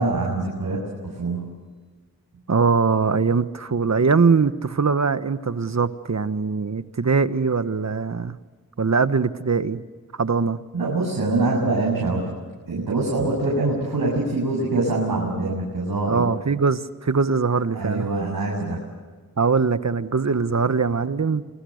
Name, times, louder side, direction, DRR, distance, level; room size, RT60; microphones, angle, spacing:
voice 1, 0.0-1.6 10.7-12.3 12.7-16.3 17.7-18.8, right 2 dB, 65° right, -3 dB, 7.5 m, -24 dB
voice 2, 2.5-8.4 8.8-9.8 10.2-10.6 16.1-18.1 19.4-21.5, right 5 dB, 50° right, 12 dB, 1.4 m, -21 dB
28.0 x 24.0 x 6.6 m, 1.4 s
cardioid pair, 40°, 36 cm